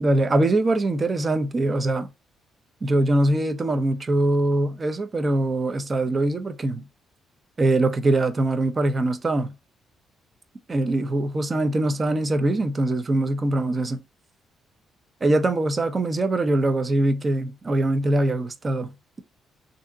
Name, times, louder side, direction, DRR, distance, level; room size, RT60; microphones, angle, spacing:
voice 1, 0.0-2.1 2.8-6.8 7.6-9.5 10.7-14.0 15.2-19.2, right 2 dB, 30° right, 0.6 m, -23 dB
3.4 x 2.7 x 2.7 m
cardioid pair, 90°, 0 cm